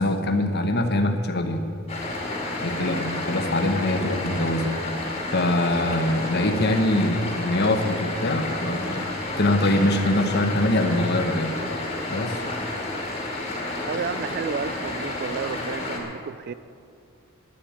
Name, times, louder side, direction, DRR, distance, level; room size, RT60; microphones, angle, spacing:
voice 1, 0.0-1.6 2.6-5.0 5.3-9.1 9.4-11.5 12.1-12.4, left 1 dB, 50° left, 5 dB, 1.2 m, -23 dB
sound 1, 1.9-16.0, left 2 dB, 30° left, 2.3 m, -31 dB
voice 2, 2.8-3.1 13.9-16.5, right 6 dB, 45° right, 15 dB, 0.3 m, -32 dB
10.0 x 9.6 x 8.8 m, 2.4 s
head